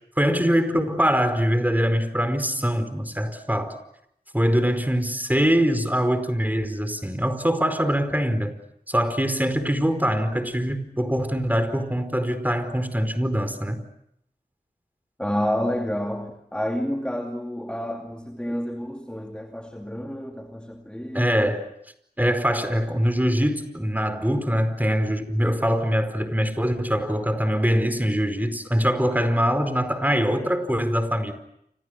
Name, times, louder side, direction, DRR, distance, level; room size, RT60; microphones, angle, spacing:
voice 1, 0.2-3.8 4.3-8.6 8.9-13.8 21.1-21.7 22.2-31.3, equal, 10° right, 9 dB, 4.9 m, -23 dB
voice 2, 15.2-21.5, equal, 5° left, 3 dB, 2.6 m, -29 dB
29.5 x 27.5 x 6.6 m, 0.75 s
wide cardioid pair, 45°, 16 cm